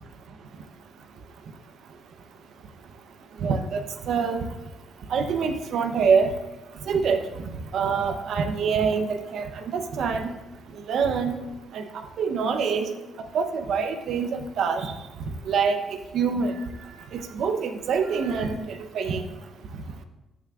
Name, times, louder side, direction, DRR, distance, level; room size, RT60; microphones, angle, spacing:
voice 1, 3.4-4.4 5.1-6.3 6.9-7.2 7.7-10.3 10.9-11.3 11.7-11.8 12.2-12.9 13.3-14.9 15.5-16.6 17.1-19.2, right 5 dB, 70° right, 7 dB, 0.8 m, -25 dB
13.5 x 6.1 x 2.5 m, 1.0 s
cardioid pair, 90°, 0 cm